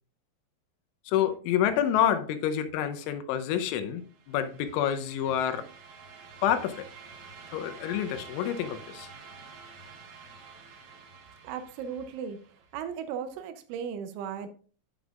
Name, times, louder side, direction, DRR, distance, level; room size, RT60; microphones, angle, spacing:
voice 1, 1.1-5.6 6.4-6.9 7.5-9.1, left 10 dB, 85° left, 3.2 m, -28 dB
sound 1, 3.9-12.8, right 5 dB, 65° right, 2.0 m, -49 dB
voice 2, 11.4-12.4 12.7-14.5, right 7 dB, 90° right, 3.1 m, -36 dB
14.0 x 5.5 x 2.4 m
omnidirectional pair, 5.4 m